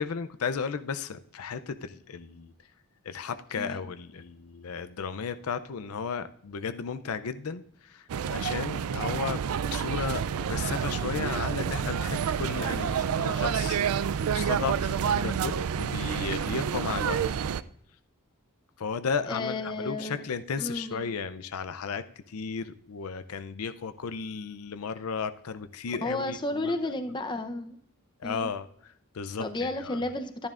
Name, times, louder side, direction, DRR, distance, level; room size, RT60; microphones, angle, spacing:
voice 1, 0.0-2.7 3.0-17.2 18.8-26.9 28.2-30.0, left 5 dB, 80° left, 10 dB, 0.5 m, -34 dB
sound 1, 8.1-17.6, right 7 dB, 80° right, 0.4 m, -29 dB
voice 2, 19.3-20.2 20.6-21.0 26.0-27.8 28.2-28.5 29.4-30.5, left 2 dB, 20° left, 7 dB, 0.7 m, -32 dB
12.0 x 10.5 x 2.5 m, 0.70 s
head